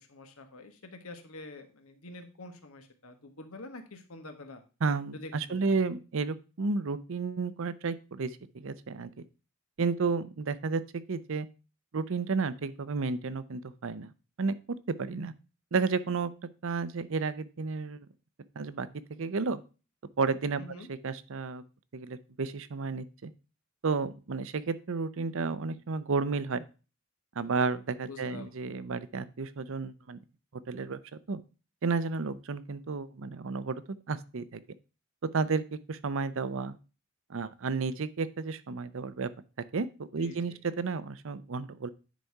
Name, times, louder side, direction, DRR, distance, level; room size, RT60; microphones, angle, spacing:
voice 1, 0.0-4.6 5.1-5.8 20.6-20.9 28.1-28.5 40.2-40.6, left 2 dB, 90° left, 7 dB, 1.4 m, -46 dB
voice 2, 4.8-9.2 9.8-10.8 11.1-11.5 11.9-14.1 14.4-14.6 15.0-15.3 15.7-16.3 16.6-18.0 18.6-19.6 20.2-20.6 20.9-21.6 21.9-23.3 23.8-26.6 27.4-30.2 30.7-31.0 31.3-31.4 31.8-33.8 34.1-34.6 35.3-36.8 37.3-39.3 39.7-41.9, right 4 dB, 65° right, 15 dB, 0.6 m, -32 dB
10.0 x 4.2 x 4.6 m, 0.33 s
head